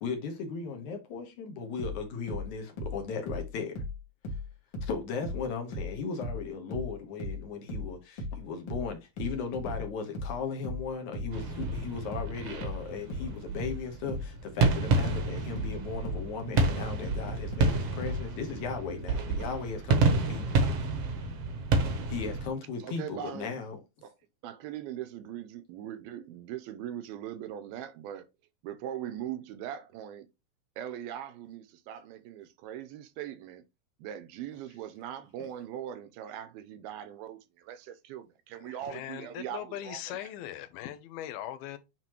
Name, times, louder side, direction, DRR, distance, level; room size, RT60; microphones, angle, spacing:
voice 1, 0.0-3.7 4.8-20.6 22.1-23.8, left 5 dB, 60° left, 2.3 m, -37 dB
sound 1, 1.8-5.0 5.2-18.3, left 2 dB, 40° left, 1.9 m, -37 dB
sound 2, 11.3-22.5, right 3 dB, 65° right, 1.6 m, -29 dB
voice 2, 22.8-23.5 24.0-24.1 24.4-28.3 28.6-30.3 30.8-33.6 34.0-40.3, right 10 dB, 80° right, 2.5 m, -40 dB
voice 3, 38.6-41.8, left 12 dB, 80° left, 2.7 m, -40 dB
9.0 x 4.1 x 3.0 m
omnidirectional pair, 4.4 m